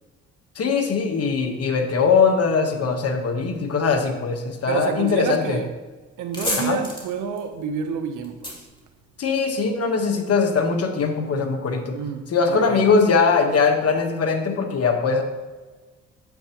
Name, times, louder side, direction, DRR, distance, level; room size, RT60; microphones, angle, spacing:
voice 1, 0.5-5.6 6.6-6.8 9.2-12.0 12.3-15.2, left 5 dB, 55° left, 1.4 m, -21 dB
voice 2, 4.7-5.7 6.2-8.7 11.9-12.8, right 7 dB, 80° right, 1.0 m, -29 dB
sound 1, 6.2-9.7, left 1 dB, 15° left, 2.8 m, -32 dB
9.3 x 8.0 x 3.1 m
cardioid pair, 90°, 30 cm